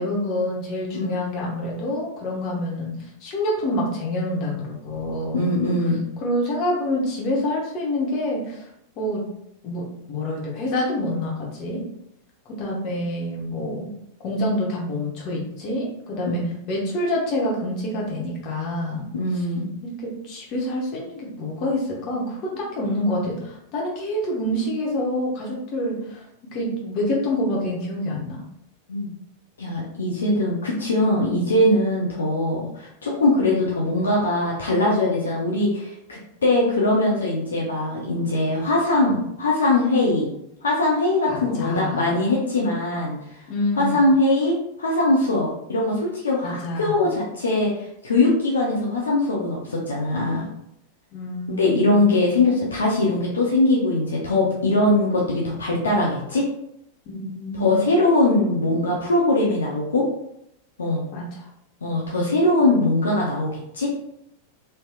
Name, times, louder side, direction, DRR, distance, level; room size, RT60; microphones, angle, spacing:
voice 1, 0.0-5.5 6.2-8.7 9.0-9.2 9.6-11.8 12.6-13.9 14.2-16.4 16.7-19.1 19.8-26.2 26.5-28.4 41.3-42.1 43.5-44.0 46.4-47.1 51.1-52.1 57.1-57.8 61.1-61.5, left 1 dB, 40° left, -3 dB, 0.9 m, -27 dB
voice 2, 5.3-6.0 16.2-16.6 19.1-19.7 28.9-29.1 29.6-40.3 40.6-43.2 43.8-50.5 51.5-56.5 57.6-60.0 60.8-61.0 61.8-63.9, left 2 dB, 70° left, -3 dB, 0.6 m, -21 dB
3.2 x 2.8 x 2.3 m, 0.77 s
figure-of-eight pair, 90°, 0 cm